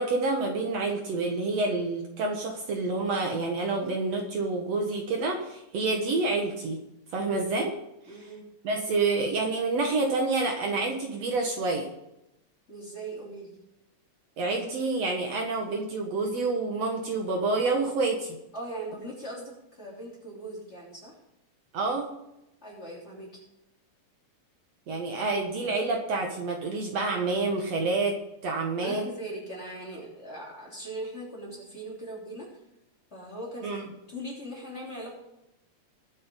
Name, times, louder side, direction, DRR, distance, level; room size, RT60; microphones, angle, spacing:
voice 1, 0.0-6.8 7.1-7.7 8.6-11.9 14.4-18.4 21.7-22.1 24.9-28.2 28.4-29.0 33.6-33.8, right 3 dB, 60° right, 1 dB, 2.4 m, -28 dB
voice 2, 7.1-7.5 8.1-8.4 12.7-13.6 18.5-21.1 22.6-23.4 28.8-32.5 33.1-33.8 34.1-35.1, right 1 dB, 20° left, -3 dB, 3.4 m, -40 dB
21.5 x 7.8 x 3.8 m, 0.86 s
omnidirectional pair, 3.6 m